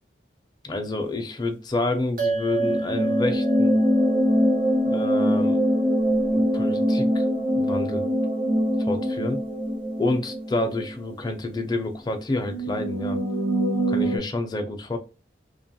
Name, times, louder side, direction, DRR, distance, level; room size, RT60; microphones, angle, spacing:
voice 1, 0.6-3.8 4.8-5.6 6.3-7.2 7.5-8.1 8.8-9.4 10.0-13.2 13.9-15.0, left 2 dB, 25° left, 5 dB, 0.4 m, -28 dB
sound 1, 2.2-6.9, right 4 dB, 50° right, 1.1 m, -32 dB
sound 2, 2.6-11.0 11.3-11.4 12.4-14.2, equal, 85° right, 0.8 m, -23 dB
2.8 x 2.2 x 2.7 m, 0.31 s
head